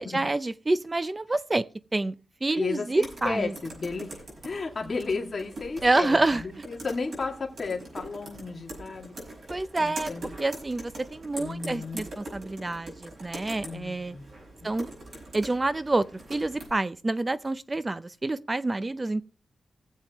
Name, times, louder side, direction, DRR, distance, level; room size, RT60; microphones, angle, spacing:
voice 1, 0.0-1.6 1.9-2.2 2.4-3.5 5.8-6.4 9.5-10.1 10.4-14.2 14.6-14.9 15.3-19.2, right 2 dB, 25° right, 0.5 m, -27 dB
voice 2, 2.6-9.4 9.8-10.3 11.4-12.0 13.6-14.3 14.6-14.7, left 4 dB, 40° left, 2.2 m, -34 dB
sound 1, 3.0-16.7, right 1 dB, 55° right, 5.8 m, -43 dB
19.5 x 7.5 x 3.0 m
wide cardioid pair, 115°, 0 cm